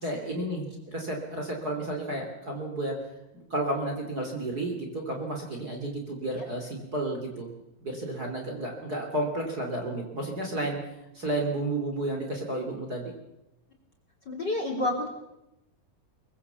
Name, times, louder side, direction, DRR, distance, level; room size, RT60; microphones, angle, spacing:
voice 1, 0.0-3.0 3.3-7.5 7.8-10.8 11.1-13.1, right 1 dB, 25° right, 1 dB, 3.3 m, -32 dB
voice 2, 14.3-15.1, left 2 dB, 30° left, 3 dB, 3.2 m, -28 dB
23.5 x 22.0 x 7.1 m, 0.91 s
omnidirectional pair, 4.3 m